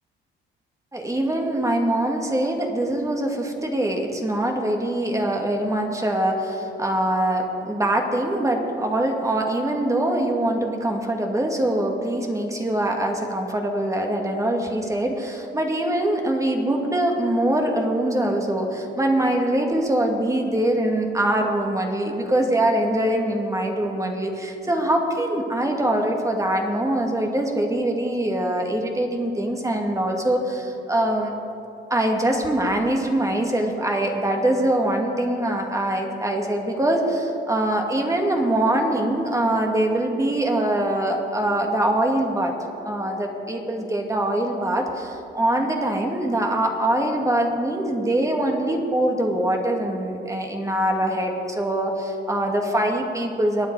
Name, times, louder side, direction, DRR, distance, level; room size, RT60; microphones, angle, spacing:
voice 1, 0.9-31.3 31.9-42.5 42.8-53.7, right 1 dB, 15° right, 2 dB, 2.1 m, -23 dB
23.5 x 9.3 x 4.7 m, 2.7 s
cardioid pair, 90°, 20 cm